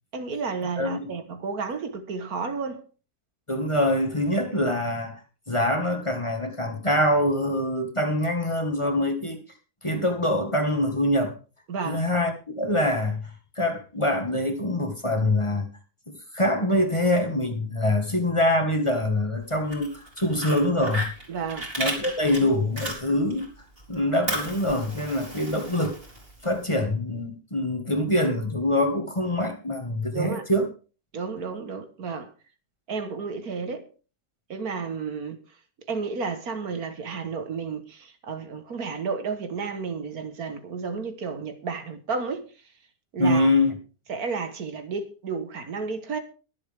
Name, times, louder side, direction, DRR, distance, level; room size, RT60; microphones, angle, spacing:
voice 1, 0.1-2.8 11.7-12.1 21.3-21.7 30.1-30.4 31.1-32.3 32.9-33.9 34.5-35.4 35.9-42.5 43.1-43.5 44.1-46.2, right 5 dB, 70° right, 1.9 m, -32 dB
voice 2, 0.8-1.1 3.5-5.2 5.5-9.4 9.8-11.3 11.8-15.6 16.1-21.0 21.8-23.5 23.9-26.0 26.4-30.7 43.2-43.8, left 1 dB, 20° left, 1.9 m, -24 dB
Fire, 19.5-23.5 23.8-26.6, right 1 dB, 35° right, 4.0 m, -34 dB
22.0 x 7.8 x 3.6 m
omnidirectional pair, 1.6 m